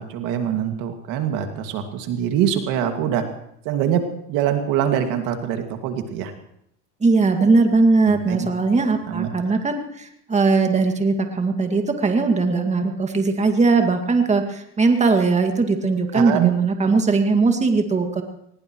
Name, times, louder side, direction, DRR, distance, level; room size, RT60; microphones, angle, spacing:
voice 1, 0.0-3.2 3.6-4.0 4.3-6.3 8.1-8.5 8.8-9.6 16.1-16.5, right 9 dB, 70° right, 5 dB, 2.3 m, -24 dB
voice 2, 7.0-18.2, right 3 dB, 20° right, 5 dB, 2.1 m, -19 dB
22.0 x 20.5 x 3.1 m, 0.74 s
supercardioid pair, 100°, 33 cm